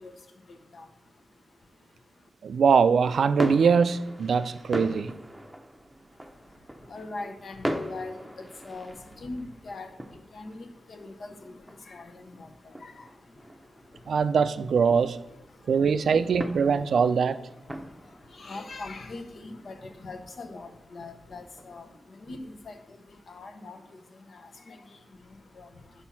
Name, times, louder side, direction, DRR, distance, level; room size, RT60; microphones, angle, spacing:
voice 1, 2.4-5.1 14.1-15.2 15.7-17.4, right 6 dB, 80° right, 13 dB, 0.4 m, -22 dB
sound 1, 3.0-22.0, equal, 5° right, 0.7 m, -40 dB
voice 2, 6.9-8.1 8.6-8.9 9.2-9.9 10.3-11.5 11.9-12.1 12.4-12.5 12.8-12.9 16.7-16.8 18.4-19.8 20.0-21.8 22.3-22.4 22.7-22.8 23.3-23.8 24.7-24.8 25.6-25.7, left 3 dB, 65° left, 7 dB, 0.9 m, -40 dB
7.1 x 4.4 x 5.7 m, 0.87 s
cardioid pair, 75°, 0 cm